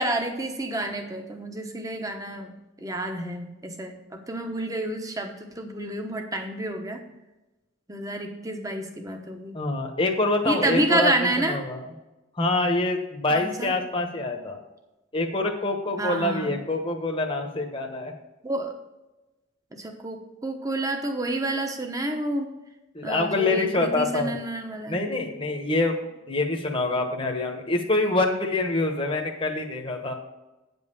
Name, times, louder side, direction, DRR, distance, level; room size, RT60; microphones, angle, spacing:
voice 1, 0.0-2.5 2.8-7.0 7.9-9.5 10.4-11.6 13.3-13.7 16.0-16.6 18.4-18.7 19.7-22.5 23.0-25.0, right 1 dB, 15° right, 4 dB, 1.0 m, -29 dB
voice 2, 9.5-11.1 11.5-11.8 12.4-14.6 15.1-18.1 22.9-24.4 24.9-25.9 26.3-30.1, left 2 dB, 25° left, 2 dB, 1.1 m, -25 dB
9.2 x 5.5 x 6.8 m, 1.0 s
head